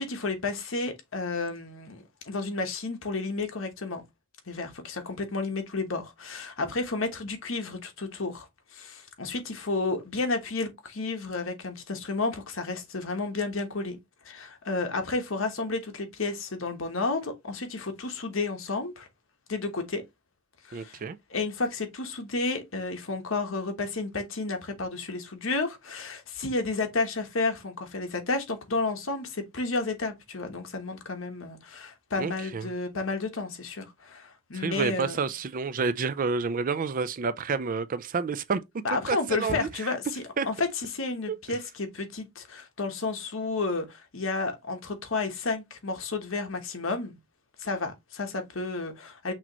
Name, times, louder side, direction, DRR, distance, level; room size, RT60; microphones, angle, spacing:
voice 1, 0.0-4.0 4.5-8.5 8.7-14.0 14.2-19.1 19.5-20.0 20.6-21.0 21.3-35.2 38.8-47.2 47.6-49.3, left 3 dB, 70° left, 1.2 m, -31 dB
voice 2, 20.7-21.2 32.2-32.7 34.5-38.6 38.9-40.0 40.4-40.5 41.3-41.4, right 5 dB, 40° right, 0.4 m, -29 dB
6.0 x 3.0 x 3.0 m
head